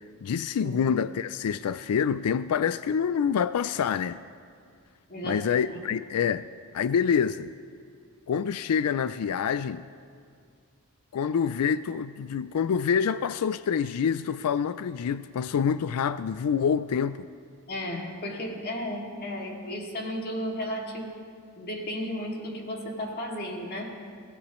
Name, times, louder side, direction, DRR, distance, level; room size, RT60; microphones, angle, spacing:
voice 1, 0.2-4.2 5.2-6.5 6.7-7.5 8.3-9.9 11.1-17.3, left 7 dB, 85° left, 0.4 m, -26 dB
voice 2, 5.1-5.4 5.7-5.8 17.7-21.2 21.6-23.9, equal, 45° left, 2.4 m, -34 dB
29.5 x 16.0 x 3.1 m
head